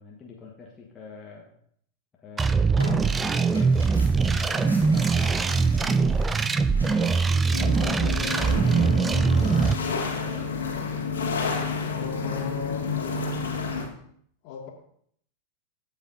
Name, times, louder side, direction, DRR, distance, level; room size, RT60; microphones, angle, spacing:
voice 1, 0.0-1.5 2.2-3.7 4.3-7.5 7.8-9.5 9.8-10.6 10.9-12.5, left 4 dB, 20° left, -3 dB, 1.4 m, -45 dB
sound 1, 2.4-9.7, right 4 dB, 15° right, 0.4 m, -22 dB
Tearing, 2.7-8.9, left 1 dB, 85° right, 2.4 m, -42 dB
sound 2, 7.5-13.8, left 5 dB, 65° left, 1.9 m, -30 dB
voice 2, 11.6-13.4 14.4-14.7, left 4 dB, 45° left, 0 dB, 2.1 m, -35 dB
14.5 x 5.5 x 2.7 m, 0.66 s
figure-of-eight pair, 90°, 0 cm